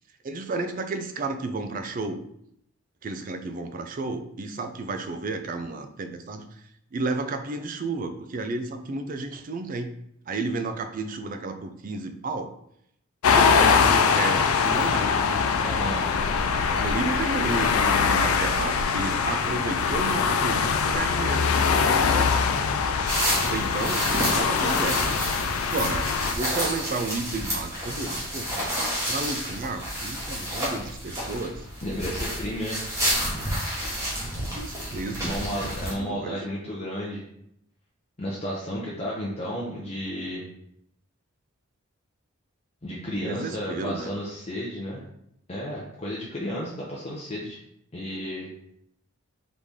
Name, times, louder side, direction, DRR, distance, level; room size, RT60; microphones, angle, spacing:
voice 1, 0.2-2.2 3.0-6.5 6.9-9.9 10.3-12.5 13.3-15.2 16.7-21.5 22.1-22.3 23.5-25.0 25.7-26.1 26.4-28.8 29.1-31.7 34.0-35.4 36.0-36.4 43.1-44.1, right 3 dB, 40° right, 8 dB, 0.4 m, -32 dB
sound 1, 13.2-26.3, left 5 dB, 85° left, 0.4 m, -23 dB
voice 2, 15.6-16.1 31.8-32.8 35.2-37.2 38.2-40.4 42.8-45.0 45.5-47.6 47.9-48.5, equal, 30° left, -5 dB, 0.7 m, -32 dB
sound 2, 23.1-35.9, equal, 15° right, 1.2 m, -30 dB
4.0 x 3.2 x 3.5 m, 0.74 s
head